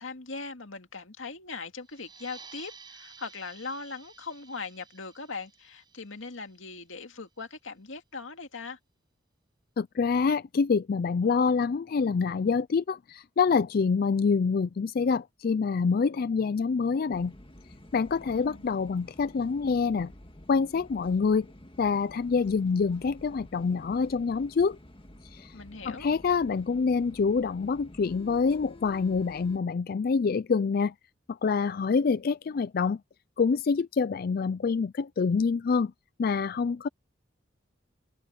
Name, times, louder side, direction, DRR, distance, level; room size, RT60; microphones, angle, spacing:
voice 1, 0.0-8.8 18.3-18.8 25.5-26.1, left 4 dB, 85° left, 2.2 m, -40 dB
sound 1, 1.8-7.1, right 5 dB, 25° right, 6.7 m, -52 dB
voice 2, 9.8-17.3 17.9-20.1 20.5-21.5 21.8-24.8 25.2-25.6 25.8-30.9 31.3-33.0 33.4-35.9 36.2-36.9, left 5 dB, 50° left, 0.4 m, -26 dB
sound 2, 17.1-29.6, left 1 dB, 30° left, 1.7 m, -50 dB
head